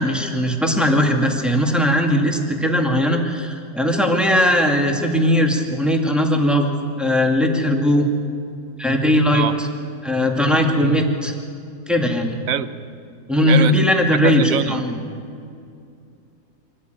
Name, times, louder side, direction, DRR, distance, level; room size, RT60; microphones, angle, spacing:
voice 1, 0.0-6.7 7.0-8.1 8.8-9.7 10.0-11.3 11.9-12.4 13.3-15.0, left 1 dB, ahead, 1 dB, 2.1 m, -19 dB
voice 2, 13.5-13.8 14.2-14.9, right 9 dB, 65° right, 13 dB, 1.2 m, -23 dB
25.0 x 14.5 x 9.2 m, 2.4 s
omnidirectional pair, 1.6 m